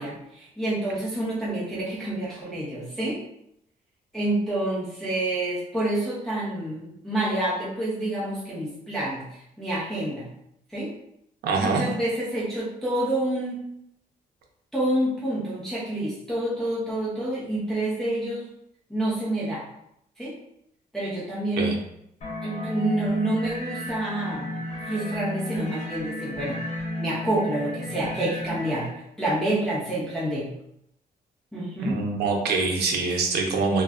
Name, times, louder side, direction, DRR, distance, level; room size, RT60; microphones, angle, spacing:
voice 1, 0.0-3.2 4.1-10.3 10.7-10.9 11.6-13.6 14.7-18.5 18.9-19.6 20.2-20.3 20.9-21.8 22.4-24.6 24.9-26.6 27.0-30.5 31.5-32.0, right 1 dB, 5° left, -9 dB, 0.7 m, -28 dB
voice 2, 11.4-11.8 21.6-21.8 31.8-33.8, right 4 dB, 85° right, 1 dB, 0.6 m, -24 dB
sound 1, 22.2-28.9, left 1 dB, 45° left, 0.7 m, -33 dB
3.0 x 2.2 x 2.4 m, 0.77 s
cardioid pair, 130°, 16 cm